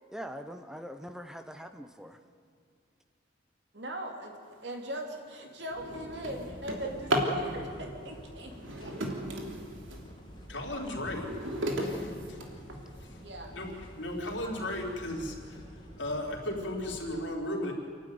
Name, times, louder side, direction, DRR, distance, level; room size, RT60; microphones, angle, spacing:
voice 1, 0.1-2.2, equal, 5° right, 8 dB, 0.9 m, -42 dB
voice 2, 3.7-4.3 4.6-9.1 13.2-13.5, right 1 dB, 60° right, 2 dB, 3.3 m, -40 dB
Drawer open or close, 4.7-5.0 5.4-7.4 8.5-10.1 10.6-13.0 13.7-13.8 14.3-14.4 14.7-15.1, right 1 dB, 85° right, 3.1 m, -34 dB
sound 1, 5.7-17.2, equal, 25° left, 2.9 m, -49 dB
voice 3, 10.5-11.3 11.7-12.4 13.0-13.2 13.5-15.6 16.0-17.7, left 1 dB, 70° left, -1 dB, 4.3 m, -36 dB
28.5 x 12.0 x 9.5 m, 2.3 s
head